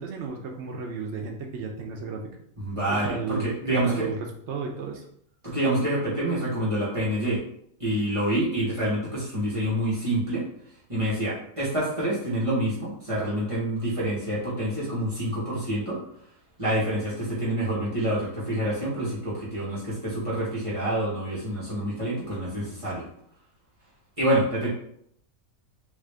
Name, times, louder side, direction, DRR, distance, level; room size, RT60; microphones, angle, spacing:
voice 1, 0.0-2.3 2.9-5.1, right 4 dB, 65° right, 2 dB, 0.7 m, -34 dB
voice 2, 2.6-4.1 5.4-7.4 7.8-10.4 10.9-16.0 16.6-23.1 24.2-24.7, right 1 dB, 25° right, -9 dB, 1.0 m, -27 dB
3.4 x 2.4 x 3.3 m, 0.69 s
omnidirectional pair, 1.5 m